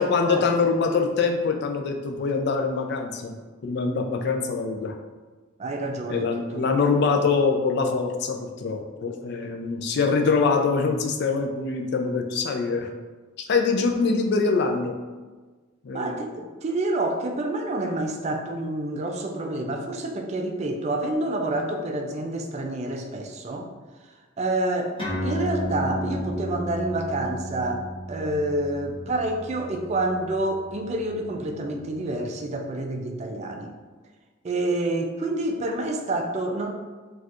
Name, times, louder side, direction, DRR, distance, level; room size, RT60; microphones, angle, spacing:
voice 1, 0.0-3.4 3.6-5.0 6.1-12.9 13.5-14.9 15.8-16.2, left 4 dB, 55° left, 4 dB, 0.3 m, -24 dB
voice 2, 5.6-6.8 15.9-23.7 24.4-33.7 34.4-36.7, right 2 dB, 35° right, 3 dB, 0.3 m, -28 dB
sound 1, 25.0-31.9, left 1 dB, 25° left, 0.9 m, -33 dB
4.2 x 2.3 x 2.4 m, 1.4 s
head